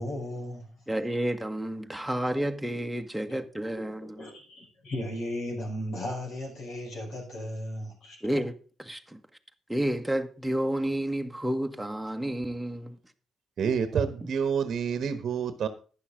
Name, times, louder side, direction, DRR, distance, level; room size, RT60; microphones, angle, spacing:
voice 1, 0.0-0.7 3.3-3.4 3.8-3.9 4.2-8.2, left 1 dB, 65° left, 6.1 m, -36 dB
voice 2, 0.9-4.2 8.2-8.5 8.9-9.2 9.7-13.0, right 1 dB, 5° right, 1.5 m, -30 dB
voice 3, 13.6-15.7, right 7 dB, 55° right, 1.2 m, -28 dB
11.5 x 9.6 x 3.8 m
hypercardioid pair, 45°, 0 cm